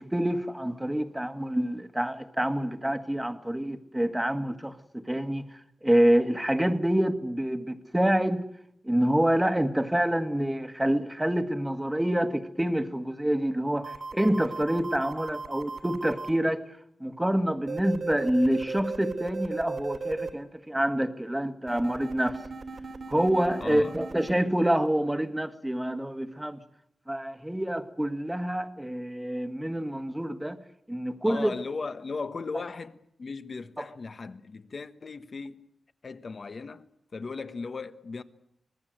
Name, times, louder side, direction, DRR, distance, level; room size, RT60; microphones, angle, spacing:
voice 1, 0.0-5.4 5.8-8.4 8.8-16.6 17.0-22.4 23.1-26.6 27.1-30.6 30.9-31.5 33.8-33.9, right 1 dB, 10° right, 1.6 m, -27 dB
sound 1, 13.8-16.3 17.7-20.3 21.7-24.3, right 4 dB, 70° right, 3.1 m, -36 dB
voice 2, 23.6-24.0 31.2-35.6 36.0-36.8 37.1-38.2, left 4 dB, 50° left, 1.2 m, -37 dB
25.5 x 20.0 x 7.8 m
wide cardioid pair, 100°, 0 cm